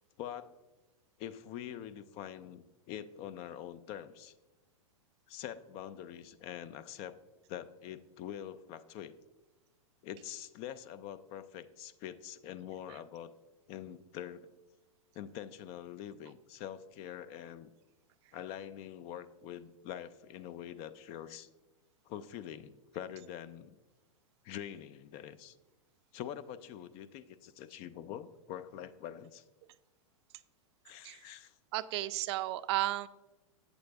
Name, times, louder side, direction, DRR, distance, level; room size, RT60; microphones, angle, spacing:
voice 1, 0.2-0.5 1.2-4.3 5.3-7.2 7.5-9.1 10.0-13.3 13.7-14.5 15.1-17.7 18.3-21.5 22.1-23.7 24.4-25.6 26.1-29.4 30.8-31.5, left 10 dB, 35° left, 13 dB, 0.4 m, -45 dB
voice 2, 31.7-33.1, right 16 dB, 50° right, 14 dB, 0.4 m, -33 dB
8.1 x 7.5 x 3.4 m, 1.1 s
hypercardioid pair, 130°, 18 cm